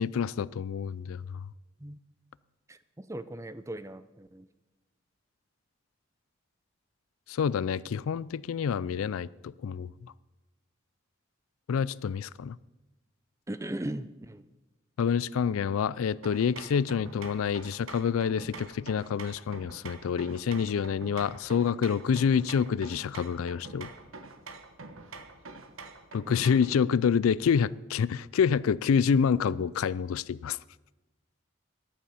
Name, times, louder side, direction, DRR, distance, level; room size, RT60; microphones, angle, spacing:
voice 1, 0.0-1.5 7.3-10.1 11.7-12.6 15.0-23.9 26.1-30.6, left 6 dB, 85° left, 0.4 m, -27 dB
voice 2, 2.7-4.5 13.5-14.4 26.5-26.6, right 1 dB, 15° right, 0.5 m, -38 dB
sound 1, 16.2-26.8, right 3 dB, 80° right, 1.2 m, -46 dB
14.0 x 11.0 x 5.7 m
head